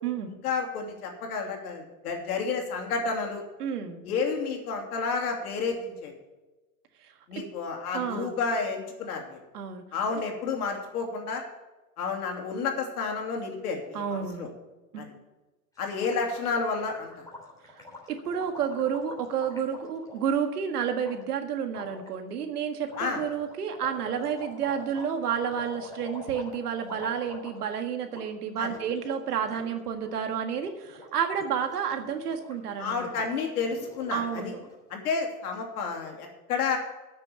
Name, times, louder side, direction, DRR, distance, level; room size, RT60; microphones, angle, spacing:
voice 1, 0.4-3.4 4.0-6.1 7.3-9.4 9.9-11.4 12.0-14.5 15.0-15.1 15.8-17.2 23.0-23.2 28.6-28.7 32.8-34.5 34.9-36.8, left 5 dB, 75° left, 2 dB, 3.0 m, -30 dB
voice 2, 3.6-4.0 7.4-7.5 7.9-8.4 9.5-9.9 13.9-14.5 14.9-15.1 18.1-33.3 34.1-34.6, right 7 dB, 85° right, 6 dB, 1.8 m, -30 dB
Gurgling, 15.8-20.4 21.0-21.2 21.7-22.1 22.8-27.8 28.0-28.2 28.5-29.7 29.9-30.2 30.5-31.0 31.3-34.7, left 2 dB, 10° left, 3.3 m, -46 dB
9.9 x 6.8 x 9.0 m, 1.1 s
hypercardioid pair, 125°, 45 cm